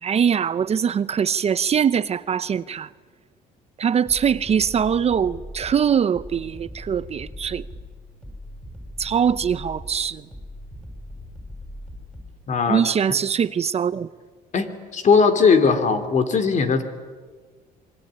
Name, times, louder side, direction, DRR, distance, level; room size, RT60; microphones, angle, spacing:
voice 1, 0.0-2.9 3.8-7.6 9.0-10.3 12.7-14.1, right 7 dB, 40° right, 15 dB, 0.7 m, -22 dB
sound 1, 4.0-12.4, left 1 dB, 5° left, 7.3 m, -40 dB
voice 2, 12.5-12.8 14.5-16.8, left 5 dB, 45° left, 8 dB, 3.1 m, -19 dB
25.5 x 23.0 x 9.9 m, 1.5 s
cardioid pair, 110°, 17 cm